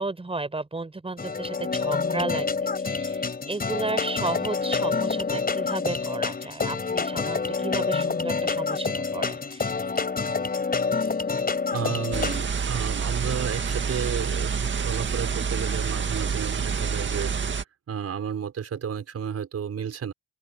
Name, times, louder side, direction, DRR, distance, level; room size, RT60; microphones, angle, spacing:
voice 1, 0.0-9.7, right 3 dB, 20° right, 6.4 m, -33 dB
sound 1, 1.2-12.4, left 4 dB, 30° left, 4.7 m, -27 dB
voice 2, 11.7-17.6 17.9-20.1, right 8 dB, 55° right, 5.8 m, -32 dB
sound 2, 12.1-17.6, right 6 dB, 40° right, 2.0 m, -27 dB
open air
cardioid pair, 90°, 30 cm